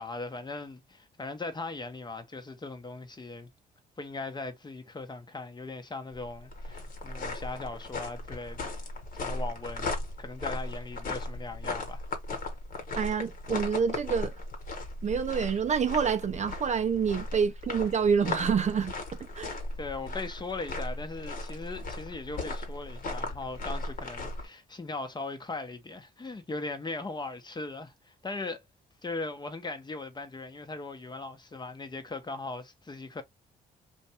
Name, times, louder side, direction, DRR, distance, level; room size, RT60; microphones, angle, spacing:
voice 1, 0.0-3.5 4.0-8.8 9.2-9.9 10.2-12.0 19.8-28.6 29.0-33.2, left 3 dB, 25° left, 0.8 m, -39 dB
sound 1, 6.1-24.5, left 2 dB, 50° left, 1.1 m, -37 dB
voice 2, 13.0-14.3 15.0-18.9 19.3-19.5, right 6 dB, 40° right, 0.5 m, -27 dB
2.5 x 2.2 x 2.8 m
supercardioid pair, 60°, 18 cm